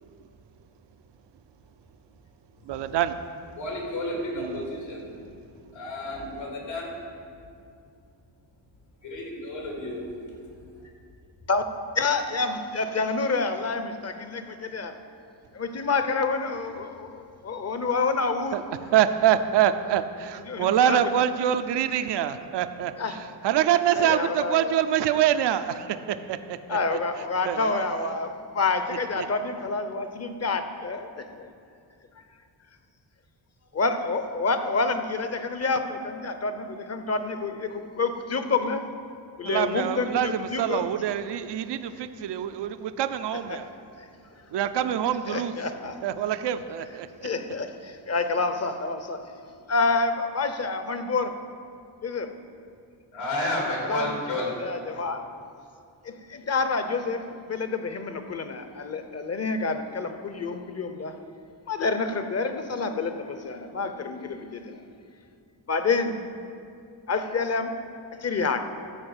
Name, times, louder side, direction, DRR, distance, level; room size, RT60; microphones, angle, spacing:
voice 1, 2.7-3.1 4.4-4.6 18.5-18.6 18.9-22.9 23.4-26.8 27.4-27.8 39.5-43.7 44.5-45.5 46.0-47.1, right 10 dB, 70° right, 10 dB, 0.6 m, -25 dB
voice 2, 3.6-5.3 5.7-7.0 9.0-10.5 10.7-10.9 53.1-54.5, left 1 dB, 80° left, -2 dB, 3.3 m, -32 dB
voice 3, 11.9-15.0 15.5-18.6 20.4-21.0 23.0-23.2 23.9-24.8 26.7-31.5 33.7-38.9 39.4-40.9 43.5-43.7 44.0-44.1 45.3-46.0 47.2-49.3 49.7-51.4 52.0-52.3 53.9-54.1 54.6-55.3 56.0-61.2 61.7-64.9 65.7-66.2 67.1-67.8 68.1-68.7, left 3 dB, 35° left, 8 dB, 0.8 m, -28 dB
14.0 x 4.8 x 8.0 m, 2.4 s
cardioid pair, 100°, 43 cm